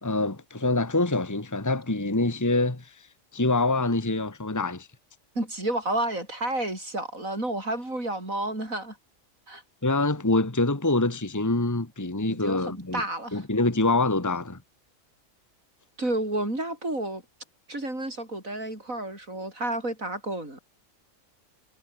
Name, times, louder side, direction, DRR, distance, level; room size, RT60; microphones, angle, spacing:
voice 1, 0.0-3.1 3.3-4.9 9.8-13.0 13.3-14.6, left 2 dB, 15° left, 1.7 m, -25 dB
voice 2, 5.3-9.0 9.5-9.6 12.3-13.4 16.0-17.2 17.7-20.6, right 1 dB, 85° right, 8.6 m, -31 dB
omnidirectional pair, 1.4 m